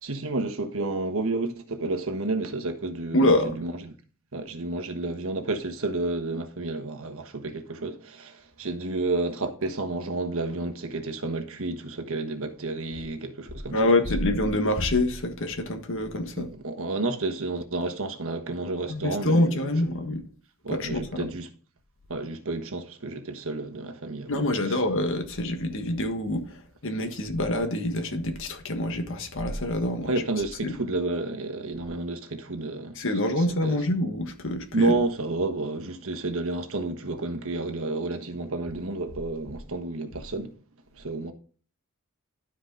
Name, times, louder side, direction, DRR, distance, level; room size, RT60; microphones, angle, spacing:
voice 1, 0.0-3.9 4.3-13.9 16.4-19.5 20.6-21.5 22.1-24.8 30.0-33.0 33.4-33.8 34.7-40.5 41.0-41.3, right 2 dB, 65° right, 1.3 m, -30 dB
voice 2, 3.1-3.6 13.7-16.5 18.9-20.2 20.7-21.3 24.3-26.5 26.8-30.1 30.6-30.8 33.0-35.0, left 1 dB, 65° left, 1.6 m, -26 dB
12.0 x 5.0 x 3.9 m
head